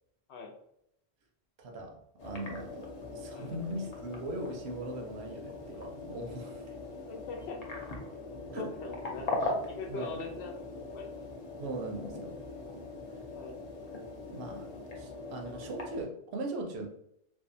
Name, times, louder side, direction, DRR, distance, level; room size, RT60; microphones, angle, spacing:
voice 1, 1.6-6.8 8.5-8.7 9.9-10.2 11.6-12.4 14.1-14.7 15.0-16.9, right 1 dB, 80° right, 3 dB, 0.8 m, -40 dB
sound 1, 2.2-16.1, left 2 dB, 50° left, 0.5 m, -40 dB
voice 2, 7.1-8.0 8.6-11.1 13.3-13.6, left 4 dB, 85° left, 3 dB, 0.9 m, -42 dB
2.6 x 2.2 x 2.5 m, 0.75 s
omnidirectional pair, 1.1 m